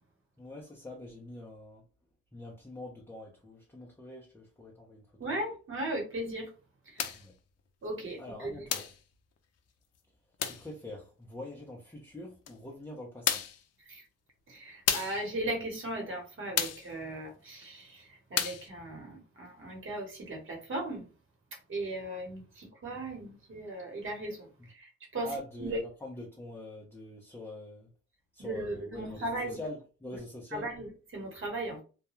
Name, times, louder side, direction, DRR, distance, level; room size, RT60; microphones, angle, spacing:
voice 1, 0.4-1.8 2.3-5.3 7.1-7.3 8.2-8.9 10.4-13.4 24.6-24.7 25.2-27.9 28.3-30.7, left 1 dB, 10° left, 0.6 m, -44 dB
voice 2, 5.2-6.5 6.9-7.1 7.8-8.7 13.9-14.0 14.5-21.0 21.7-24.5 24.7-25.3 25.6-25.8 28.4-29.6 30.5-31.8, right 1 dB, 40° right, 1.2 m, -37 dB
sound 1, 7.0-7.3 8.7-9.0 10.4-10.7 12.5-12.6 13.3-13.6 14.9-15.2 16.6-16.9 18.4-18.7, left 8 dB, 55° left, 0.5 m, -31 dB
2.3 x 2.2 x 3.0 m
cardioid pair, 90°, 30 cm